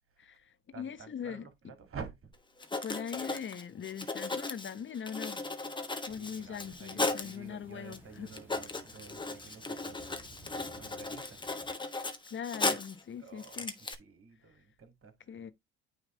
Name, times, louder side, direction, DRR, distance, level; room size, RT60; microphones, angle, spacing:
voice 1, 0.2-1.7 2.8-5.4 6.1-8.3 12.3-13.7 15.3-15.5, left 7 dB, 35° left, 0.9 m, -41 dB
voice 2, 0.7-2.3 6.1-11.4 13.2-15.1, right 5 dB, 45° right, 2.3 m, -50 dB
Writing, 2.3-2.4 2.6-7.4 7.9-8.0 8.3-13.0 13.4-13.9, left 3 dB, 15° left, 1.2 m, -36 dB
sound 1, 6.1-11.7, right 2 dB, 5° right, 1.8 m, -57 dB
9.2 x 3.2 x 3.7 m
hypercardioid pair, 60°, 32 cm